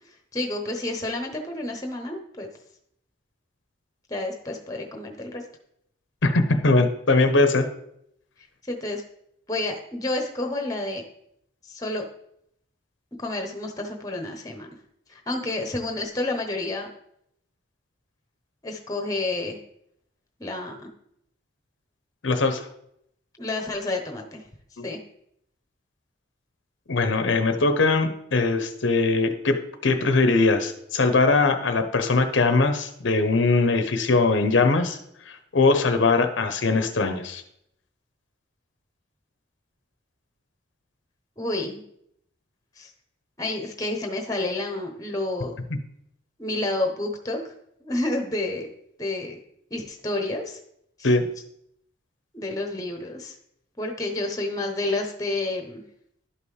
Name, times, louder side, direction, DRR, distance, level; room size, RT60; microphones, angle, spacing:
voice 1, 0.3-2.5 4.1-5.4 8.7-9.0 9.5-11.0 11.7-12.0 13.2-14.7 15.1-16.9 18.6-19.6 20.4-20.9 23.4-24.4 24.8-25.0 41.4-41.8 42.8-42.9 43.4-45.6 46.4-47.4 47.8-48.7 49.0-49.4 49.7-50.6 51.0-51.1 52.3-53.3 53.8-55.8, left 2 dB, 20° left, 3 dB, 0.9 m, -29 dB
voice 2, 6.2-7.6 22.2-22.7 24.8-24.9 26.9-29.6 29.8-35.0 35.3-37.4 51.0-51.2, left 3 dB, 70° left, 8 dB, 0.7 m, -21 dB
11.5 x 5.4 x 3.3 m, 0.73 s
head